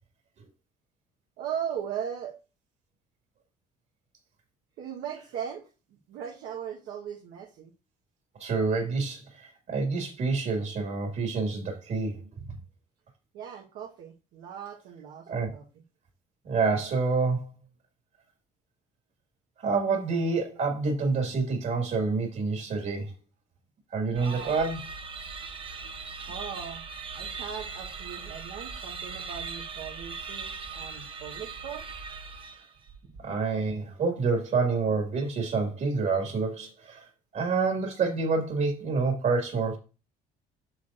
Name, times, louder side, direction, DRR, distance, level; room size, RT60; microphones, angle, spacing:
voice 1, 1.4-2.4 4.8-7.7 13.3-15.6 24.2-24.6 25.8-26.0 26.3-26.8 27.1-31.8, right 8 dB, 80° right, 1.2 m, -38 dB
voice 2, 8.4-12.2 15.3-15.5 16.4-17.5 19.6-23.1 23.9-24.8 33.2-37.1 37.3-39.8, right 4 dB, 55° right, 2.0 m, -27 dB
sound 1, 24.1-32.8, right 5 dB, 30° right, 0.8 m, -39 dB
8.4 x 6.1 x 2.5 m
cardioid pair, 110°, 17 cm